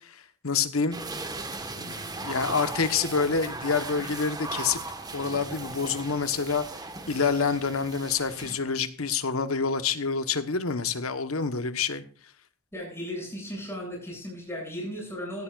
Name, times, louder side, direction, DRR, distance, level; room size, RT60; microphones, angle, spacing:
voice 1, 0.4-1.0 1.8-4.8 5.1-6.6 7.1-12.0, left 5 dB, 90° left, 10 dB, 1.2 m, -27 dB
sound 1, 0.9-8.6, right 3 dB, 20° right, 1.4 m, -37 dB
voice 2, 12.7-15.4, equal, 10° left, -1 dB, 7.6 m, -36 dB
16.5 x 13.0 x 2.5 m, 0.41 s
head